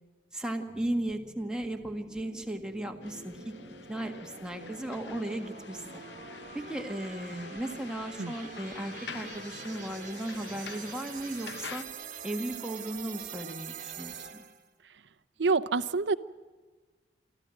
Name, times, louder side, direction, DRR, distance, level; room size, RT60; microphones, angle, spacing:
voice 1, 0.3-3.5 3.9-6.0 6.5-11.8 12.2-14.5, right 1 dB, 5° right, 3 dB, 1.7 m, -36 dB
sound 1, 0.7-14.7, right 6 dB, 45° right, 1.5 m, -45 dB
sound 2, 3.0-11.8, left 5 dB, 75° left, 0.9 m, -46 dB
voice 2, 15.4-16.1, right 4 dB, 85° right, 14 dB, 0.8 m, -26 dB
25.0 x 14.5 x 7.8 m, 1.4 s
head